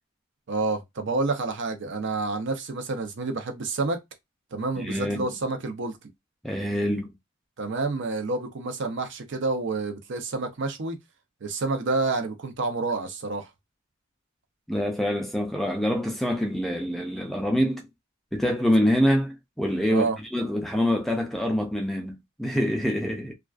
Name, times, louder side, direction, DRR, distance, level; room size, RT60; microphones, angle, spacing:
voice 1, 0.5-4.0 4.5-6.0 7.6-11.0 11.4-13.5 19.9-20.2, right 3 dB, 60° right, 0.5 m, -28 dB
voice 2, 4.8-5.3 6.4-7.1 14.7-17.8 18.3-20.1 20.3-23.4, equal, ahead, 0.3 m, -25 dB
2.3 x 2.3 x 2.3 m
head